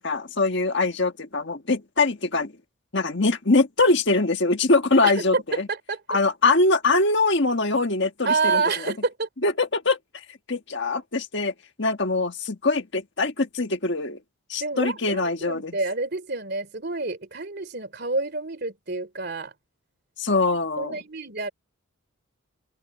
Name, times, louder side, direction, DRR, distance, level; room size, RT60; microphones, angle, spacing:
voice 1, 0.0-2.5 2.9-5.7 6.1-8.9 9.4-10.0 10.5-14.2 14.5-15.8 20.2-21.0, left 3 dB, 55° left, 1.6 m, -23 dB
voice 2, 5.0-6.0 8.2-9.3 14.6-19.5 20.8-21.5, right 3 dB, 50° right, 3.2 m, -28 dB
open air
head